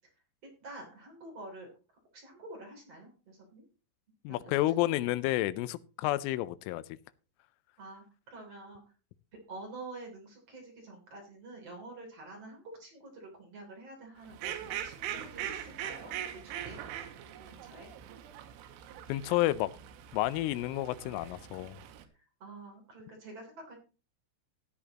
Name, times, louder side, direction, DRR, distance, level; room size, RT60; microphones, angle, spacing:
voice 1, 0.6-1.7 2.1-3.7 4.3-4.4 4.9-5.0 7.8-8.8 9.5-16.8 17.5-17.9 22.4-23.8, right 2 dB, 35° right, 1 dB, 3.7 m, -48 dB
voice 2, 4.2-6.8 19.1-19.7 20.1-21.8, left 16 dB, 85° left, 15 dB, 3.2 m, -30 dB
Fowl, 14.2-22.0, right 10 dB, 85° right, 3.5 m, -42 dB
15.5 x 10.0 x 3.0 m, 0.34 s
omnidirectional pair, 5.7 m